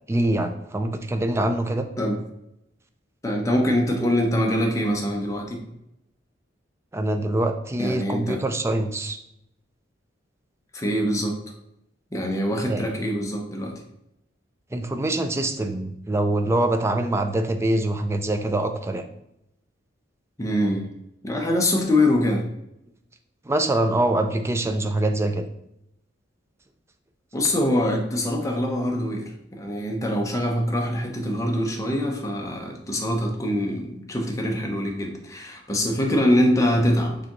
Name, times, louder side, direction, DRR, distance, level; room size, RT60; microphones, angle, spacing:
voice 1, 0.1-1.9 6.9-9.2 12.7-12.9 14.7-19.0 23.5-25.4, right 1 dB, 15° right, 7 dB, 0.3 m, -24 dB
voice 2, 3.2-5.6 7.8-8.4 10.7-11.4 12.1-13.8 20.4-20.9 21.2-22.4 27.3-37.2, left 1 dB, 15° left, 1 dB, 0.7 m, -24 dB
4.9 x 3.5 x 3.0 m, 0.82 s
head